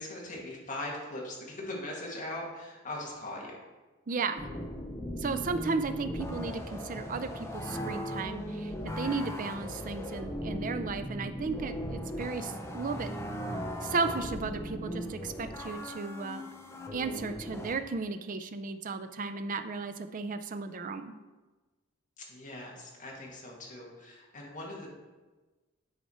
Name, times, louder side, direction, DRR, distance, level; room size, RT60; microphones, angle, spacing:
voice 1, 0.0-3.6 22.2-24.9, left 1 dB, 40° left, -3 dB, 1.8 m, -40 dB
voice 2, 4.1-4.5 5.2-13.1 13.8-16.5 16.9-21.1, right 4 dB, 40° right, 9 dB, 0.4 m, -35 dB
sound 1, 4.4-17.8, equal, 15° left, 0.7 m, -38 dB
8.3 x 4.7 x 4.3 m, 1.2 s
head